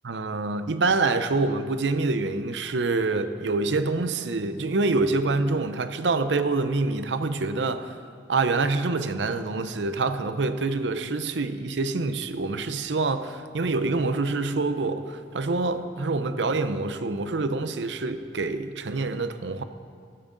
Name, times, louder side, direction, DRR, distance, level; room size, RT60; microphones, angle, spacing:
voice 1, 0.0-8.0 8.3-19.6, right 3 dB, 85° right, 0.7 m, -26 dB
15.5 x 12.5 x 3.9 m
head